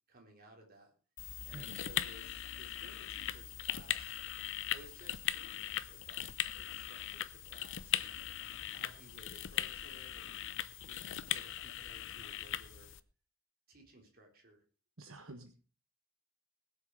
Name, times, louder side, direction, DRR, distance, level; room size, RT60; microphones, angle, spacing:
voice 1, 0.1-0.9 1.4-4.2 4.7-6.2 6.5-8.1 8.7-10.5 10.8-12.9 13.7-14.6, right 1 dB, 45° right, 1 dB, 3.9 m, -59 dB
sound 1, 1.2-13.0, left 11 dB, 60° left, 0.7 m, -39 dB
voice 2, 15.0-15.7, right 2 dB, 70° right, 5 dB, 1.4 m, -50 dB
20.5 x 7.3 x 4.8 m, 0.37 s
head